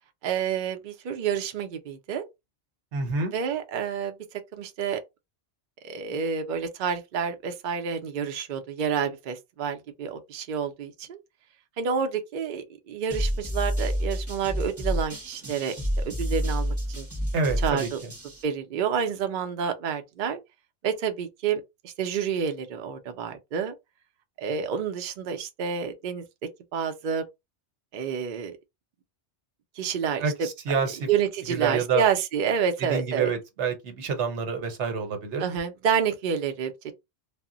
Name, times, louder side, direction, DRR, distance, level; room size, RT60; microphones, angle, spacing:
voice 1, 0.2-2.2 3.3-4.1 4.5-5.0 5.8-11.2 11.8-17.1 17.6-18.0 18.4-20.4 20.8-23.7 24.4-26.2 26.7-27.3 27.9-28.6 29.8-30.5 31.1-33.3 35.4-36.9, right 7 dB, 55° right, 0.6 m, -29 dB
voice 2, 2.9-3.3 17.3-17.9 30.2-31.0 31.5-32.0 32.9-35.4, right 5 dB, 80° right, 1.1 m, -27 dB
sound 1, 13.1-18.4, equal, 15° right, 0.6 m, -29 dB
2.1 x 2.0 x 3.6 m
omnidirectional pair, 1.2 m